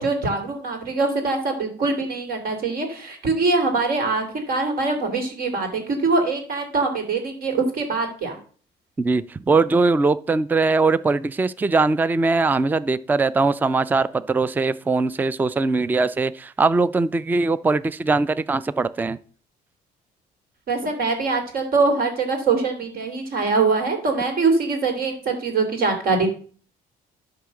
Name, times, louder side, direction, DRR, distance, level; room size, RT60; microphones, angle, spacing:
voice 1, 0.0-8.4 20.7-26.3, right 3 dB, 60° right, 4 dB, 3.1 m, -23 dB
voice 2, 9.0-19.2, right 3 dB, 10° right, 17 dB, 0.4 m, -21 dB
11.5 x 3.8 x 7.0 m, 0.42 s
cardioid pair, 110°, 17 cm